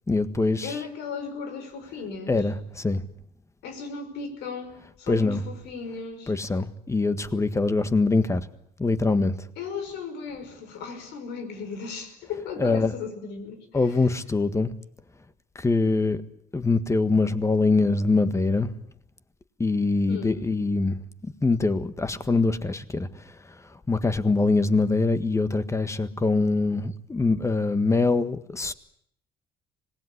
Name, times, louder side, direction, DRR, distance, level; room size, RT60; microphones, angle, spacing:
voice 1, 0.1-0.7 2.3-3.0 5.1-5.4 6.3-8.5 8.8-9.4 12.6-12.9 13.7-14.7 15.5-16.2 16.5-18.7 19.6-21.0 21.2-23.1 23.9-28.7, left 3 dB, 15° left, 1.6 m, -23 dB
voice 2, 0.6-2.5 3.6-6.3 9.6-14.0 20.1-20.5, left 5 dB, 85° left, 5.5 m, -36 dB
25.5 x 19.5 x 9.9 m
cardioid pair, 110°, 17 cm